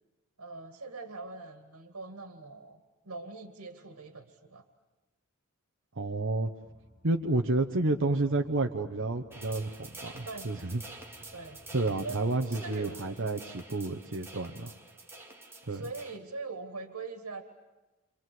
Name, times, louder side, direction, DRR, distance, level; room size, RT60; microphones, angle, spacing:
voice 1, 0.4-2.8 3.0-4.6 10.2-10.5 11.3-11.7 12.0-12.2 12.5-13.0 15.7-17.4, right 3 dB, 90° right, 6 dB, 2.1 m, -42 dB
voice 2, 6.0-6.5 7.0-9.7 10.0-10.8 11.7-14.7 15.7-15.8, right 2 dB, 60° right, 3 dB, 1.1 m, -30 dB
sound 1, 6.6-12.2, left 1 dB, 15° left, 4.0 m, -57 dB
sound 2, 9.3-16.2, right 2 dB, 10° right, 2.4 m, -48 dB
29.0 x 25.5 x 7.8 m, 1.1 s
head